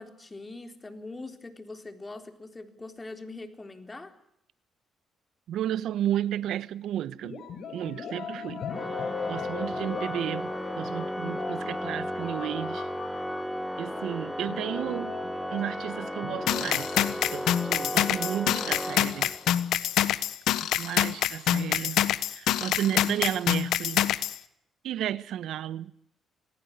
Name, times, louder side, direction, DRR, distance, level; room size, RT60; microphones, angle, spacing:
voice 1, 0.0-4.1, left 2 dB, 20° left, 3.9 m, -42 dB
voice 2, 5.5-7.4 7.7-12.9 13.8-15.2 15.5-19.3 20.6-22.0 22.3-24.1 24.8-25.9, right 11 dB, 80° right, 1.2 m, -33 dB
sound 1, 7.2-18.9, left 7 dB, 65° left, 5.6 m, -40 dB
Organ, 8.7-19.6, equal, ahead, 1.5 m, -35 dB
sound 2, 16.5-24.4, left 12 dB, 80° left, 1.2 m, -26 dB
27.0 x 19.0 x 8.2 m
cardioid pair, 90°, 0 cm